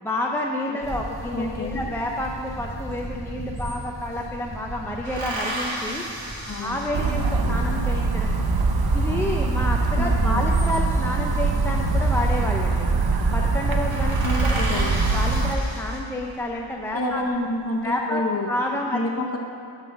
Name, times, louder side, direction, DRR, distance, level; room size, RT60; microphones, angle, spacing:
voice 1, 0.0-6.0 6.6-8.5 8.9-12.9 13.3-17.2 17.8-18.2 18.5-19.3, left 1 dB, 5° left, -1 dB, 0.6 m, -29 dB
sound 1, 0.8-12.4, right 1 dB, 15° right, 1.5 m, -37 dB
voice 2, 1.3-1.9 6.5-6.8 10.0-10.6 14.2-15.0 16.9-18.5 18.9-19.4, left 1 dB, 30° left, 0 dB, 1.2 m, -28 dB
sound 2, 2.9-3.0 3.2-4.3 5.0-7.6 10.2-11.2 12.4-12.7 13.1-13.2 13.5-13.6 13.9-16.4 17.0-17.7, right 1 dB, 85° right, 1.9 m, -33 dB
sound 3, 6.9-15.5, right 3 dB, 55° right, 0.8 m, -22 dB
11.0 x 4.0 x 7.1 m, 2.6 s
wide cardioid pair, 95°, 46 cm